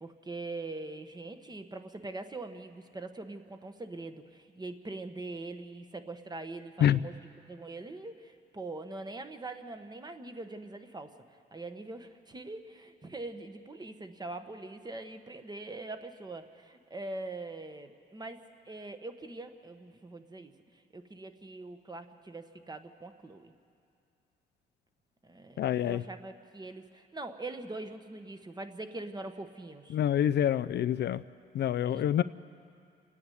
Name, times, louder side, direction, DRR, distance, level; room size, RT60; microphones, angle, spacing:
voice 1, 0.0-11.1 11.5-18.4 18.6-23.5 25.2-30.0 31.9-32.0, right 2 dB, 20° right, 7 dB, 1.3 m, -43 dB
voice 2, 25.6-26.0 29.9-31.2 31.5-32.2, left 10 dB, 60° left, 13 dB, 0.5 m, -26 dB
28.0 x 9.9 x 9.3 m, 2.4 s
cardioid pair, 90°, 20 cm